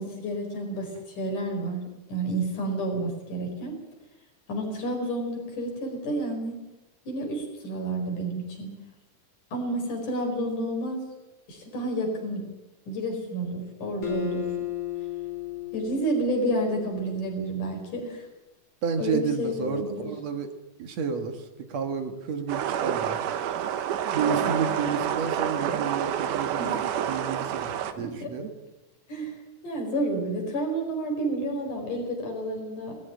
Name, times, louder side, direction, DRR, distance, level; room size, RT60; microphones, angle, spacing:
voice 1, 0.0-1.8 2.1-3.8 4.5-6.6 7.0-8.7 9.5-11.0 11.5-12.5 12.9-14.5 15.7-18.3 19.0-20.1 26.6-26.8 28.0-28.3 29.1-29.4 29.6-33.0, right 1 dB, 80° left, 2 dB, 6.5 m, -30 dB
Acoustic guitar, 14.0-17.4, left 12 dB, 45° left, 4.1 m, -35 dB
voice 2, 18.8-20.5 20.8-23.3 24.1-28.5, right 6 dB, 60° right, 6 dB, 2.7 m, -31 dB
sound 1, 22.5-27.9, right 9 dB, 90° right, 2.7 m, -28 dB
19.0 x 15.0 x 9.2 m, 1.0 s
omnidirectional pair, 3.6 m